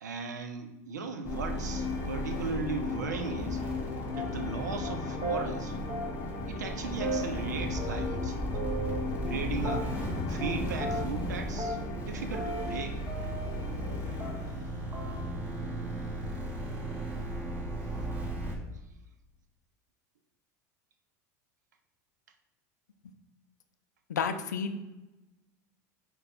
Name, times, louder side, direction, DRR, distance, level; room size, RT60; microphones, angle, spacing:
voice 1, 0.0-3.6 4.1-5.8 6.5-8.5 9.2-9.9 10.3-11.8 12.1-13.0 15.6-16.5 16.8-16.9, right 4 dB, 90° right, 6 dB, 0.5 m, -37 dB
sound 1, 1.2-18.5, right 1 dB, 15° right, 1.4 m, -36 dB
sound 2, 1.3-14.6, left 5 dB, 50° left, 0.7 m, -37 dB
sound 3, 4.1-4.5 4.8-4.9 5.2-5.4 5.9-6.4 6.6-6.8 7.0-8.3 8.5-9.4 9.6-10.1 10.4-10.5 10.8-11.3 11.6-13.9 14.2-14.6 14.9-15.2, right 2 dB, 30° right, 1.1 m, -37 dB
voice 2, 24.1-24.8, left 6 dB, 90° left, 8 dB, 0.4 m, -31 dB
5.3 x 2.2 x 3.9 m, 1.0 s
hypercardioid pair, 90°, 9 cm